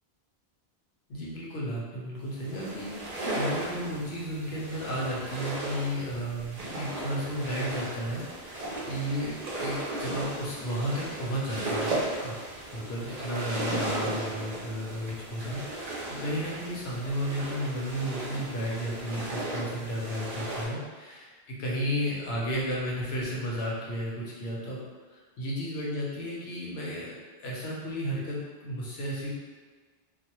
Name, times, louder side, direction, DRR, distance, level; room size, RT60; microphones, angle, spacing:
voice 1, 1.1-12.3 12.7-24.8 25.1-27.2 27.4-29.3, equal, 80° left, -4 dB, 0.9 m, -33 dB
sound 1, 2.4-20.6, right 1 dB, 50° right, 0.5 m, -36 dB
2.4 x 2.1 x 2.8 m, 1.4 s
omnidirectional pair, 1.1 m